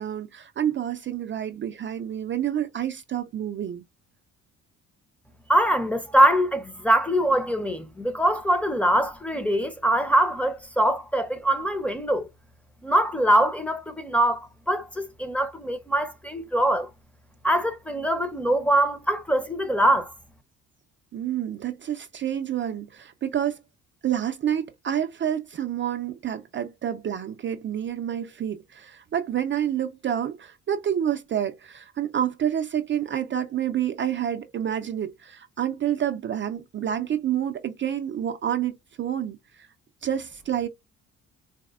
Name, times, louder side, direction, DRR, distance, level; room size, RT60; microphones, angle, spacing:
voice 1, 0.0-3.8 21.1-23.6 24.0-39.4 40.0-40.7, right 10 dB, 40° right, 0.4 m, -28 dB
voice 2, 5.5-12.3 12.8-16.9 17.4-20.1, right 1 dB, 5° left, 0.6 m, -23 dB
4.0 x 2.1 x 2.3 m
cardioid pair, 90°, 30 cm